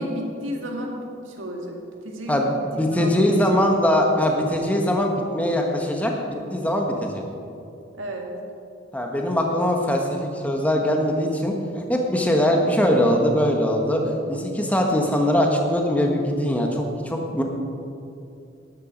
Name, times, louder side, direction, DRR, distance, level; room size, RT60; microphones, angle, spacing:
voice 1, 0.0-1.8 2.0-3.6 7.9-8.3, equal, 85° right, 1 dB, 1.9 m, -33 dB
voice 2, 2.3-7.2 8.9-11.6 11.9-17.4, left 1 dB, 10° left, 1 dB, 1.3 m, -22 dB
12.0 x 11.5 x 5.2 m, 2.7 s
head